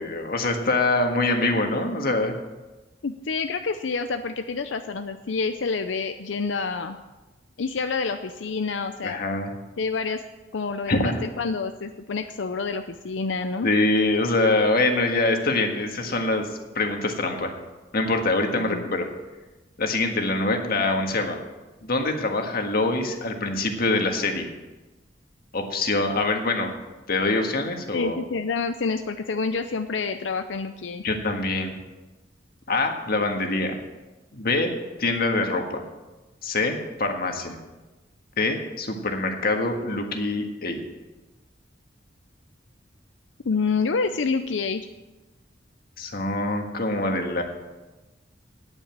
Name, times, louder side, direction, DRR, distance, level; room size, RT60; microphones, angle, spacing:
voice 1, 0.0-2.4 9.0-9.5 10.9-11.2 13.6-16.5 16.7-17.5 17.9-19.1 19.8-21.4 21.8-24.5 25.5-26.7 27.1-28.2 31.0-31.7 32.7-33.8 34.3-35.8 36.4-37.5 38.4-40.8 46.0-47.4, left 2 dB, 55° left, 4 dB, 1.6 m, -24 dB
voice 2, 3.0-7.0 7.6-9.2 9.8-10.2 10.5-13.7 18.5-18.9 27.9-31.0 43.4-44.8, left 4 dB, 90° left, 8 dB, 0.6 m, -28 dB
9.9 x 9.1 x 7.5 m, 1.1 s
head